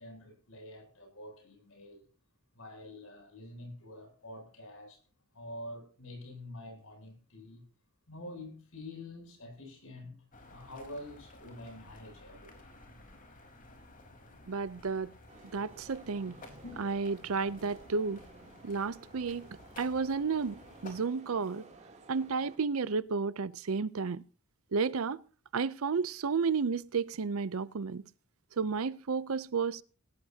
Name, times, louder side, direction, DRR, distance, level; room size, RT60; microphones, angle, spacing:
voice 1, 0.0-2.1 2.5-5.0 5.3-7.6 8.1-10.2 10.5-12.6 16.6-16.8, left 1 dB, 70° left, 8.0 m, -47 dB
sound 1, 10.3-21.0, left 2 dB, 40° left, 4.0 m, -54 dB
voice 2, 14.5-15.1 15.5-16.4 16.8-18.2 18.6-19.5 19.8-21.6 22.1-24.2 24.7-25.2 25.5-28.0 28.6-29.8, right 5 dB, 70° right, 0.6 m, -32 dB
sound 2, 15.3-22.6, right 2 dB, 35° right, 2.9 m, -55 dB
18.0 x 17.0 x 2.8 m
head